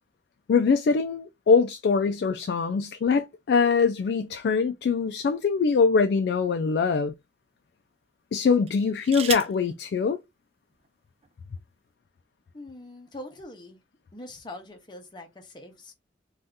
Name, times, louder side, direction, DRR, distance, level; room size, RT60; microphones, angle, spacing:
voice 1, 0.5-7.1 8.3-10.2, left 5 dB, 65° left, 0.3 m, -23 dB
sound 1, 4.9-6.1 6.8-7.0 8.6-9.7 10.8-10.9 11.2-11.6, right 8 dB, 35° right, 0.4 m, -36 dB
voice 2, 12.5-13.8 14.1-15.9, left 1 dB, 25° left, 0.7 m, -43 dB
2.7 x 2.4 x 3.4 m
head